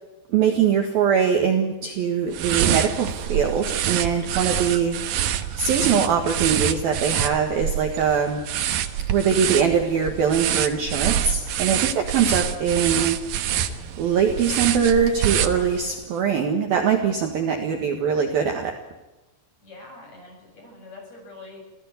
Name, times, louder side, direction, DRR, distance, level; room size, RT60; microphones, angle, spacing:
voice 1, 0.3-8.4 9.1-13.2 13.5-13.7 14.0-18.8, right 7 dB, 60° right, 4 dB, 2.8 m, -22 dB
sound 1, 2.3-16.0, right 10 dB, 80° right, 2.0 m, -26 dB
voice 2, 17.2-17.7 19.6-21.6, left 2 dB, 30° left, 1 dB, 8.6 m, -44 dB
26.5 x 17.0 x 8.4 m, 1.1 s
omnidirectional pair, 5.9 m